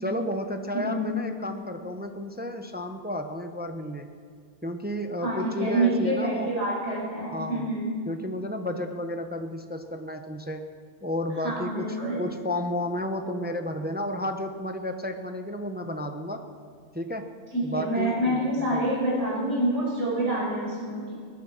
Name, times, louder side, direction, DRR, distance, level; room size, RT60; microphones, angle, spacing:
voice 1, 0.0-4.1 4.6-6.5 7.3-7.7 8.1-10.6 11.0-16.4 16.9-17.3 17.6-18.8, left 1 dB, 10° right, 6 dB, 0.6 m, -32 dB
voice 2, 0.7-1.1 5.2-7.9 11.4-12.2 17.5-21.1, right 1 dB, 50° right, -5 dB, 6.0 m, -27 dB
21.0 x 10.5 x 6.1 m, 2.1 s
omnidirectional pair, 1.6 m